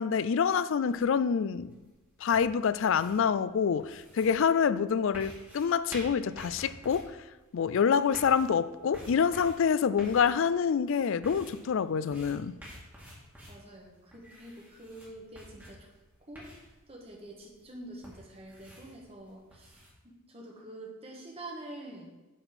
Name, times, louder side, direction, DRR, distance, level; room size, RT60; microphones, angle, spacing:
voice 1, 0.0-1.7 2.2-7.1 7.5-12.6, left 6 dB, 60° left, 0.3 m, -27 dB
sound 1, 0.9-19.9, equal, 10° right, 2.1 m, -51 dB
voice 2, 13.5-15.9 16.3-16.5 16.9-22.1, right 1 dB, 25° right, 1.6 m, -46 dB
9.2 x 4.4 x 5.9 m
head